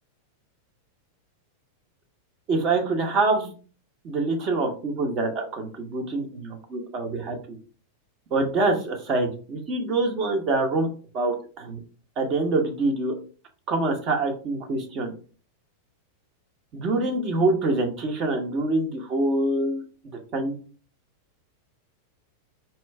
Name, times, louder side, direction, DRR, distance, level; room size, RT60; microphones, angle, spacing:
voice 1, 2.5-3.5 4.0-7.6 8.3-10.9 11.1-11.8 12.2-13.1 13.7-15.1 16.7-19.8 20.3-20.5, right 2 dB, 35° right, 4 dB, 1.1 m, -25 dB
4.4 x 3.1 x 3.3 m, 0.39 s
figure-of-eight pair, 90°, 0 cm